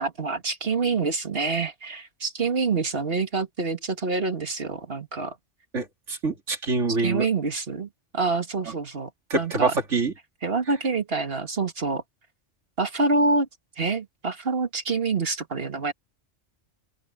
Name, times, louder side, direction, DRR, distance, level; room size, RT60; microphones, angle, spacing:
voice 1, 0.0-5.4 7.0-9.7 10.4-12.0 12.8-13.5 13.8-15.9, right 3 dB, 55° right, 2.1 m, -26 dB
voice 2, 5.7-7.2 9.3-10.1, right 3 dB, 80° right, 2.9 m, -25 dB
open air
omnidirectional pair, 1.2 m